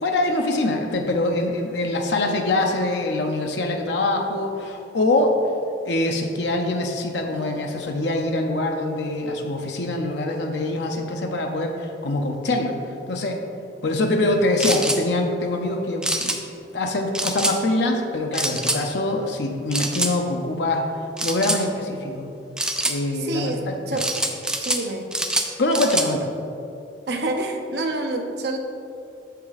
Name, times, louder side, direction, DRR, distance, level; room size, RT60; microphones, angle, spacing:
voice 1, 0.0-5.4 5.8-13.4 13.8-16.4 16.7-22.3 22.9-24.0 25.6-26.3, left 2 dB, 75° left, 2 dB, 0.7 m, -24 dB
sound 1, 14.6-15.0 16.0-16.4 17.1-17.6 18.3-18.8 19.7-20.1 21.2-21.6 22.6-23.0 24.0-24.8 25.1-26.1, right 1 dB, 5° right, 0.4 m, -25 dB
voice 2, 23.2-24.1 24.6-25.1 27.1-28.6, right 2 dB, 65° right, 3 dB, 0.8 m, -27 dB
6.9 x 5.6 x 4.1 m, 2.6 s
head